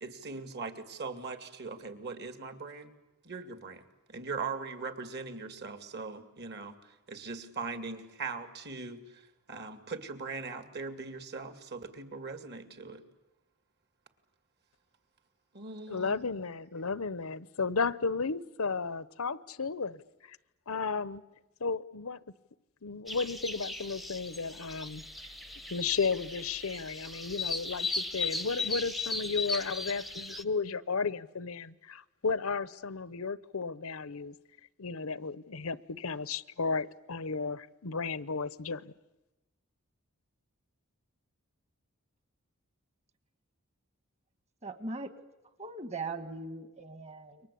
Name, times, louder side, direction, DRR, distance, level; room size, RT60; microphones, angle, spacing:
voice 1, 0.0-2.9 3.2-6.8 7.1-13.0 15.5-16.2, right 4 dB, 50° right, 8 dB, 2.5 m, -40 dB
voice 2, 15.9-20.0 20.3-20.4 20.7-21.2 21.6-22.2 22.8-25.0 25.7-34.3 34.8-38.9, left 4 dB, 75° left, 17 dB, 0.9 m, -34 dB
sound 1, 23.1-30.4, left 3 dB, ahead, 0.9 m, -37 dB
voice 3, 44.6-45.1 45.6-47.4, right 3 dB, 30° right, 11 dB, 1.8 m, -39 dB
29.5 x 24.0 x 8.5 m, 1.0 s
head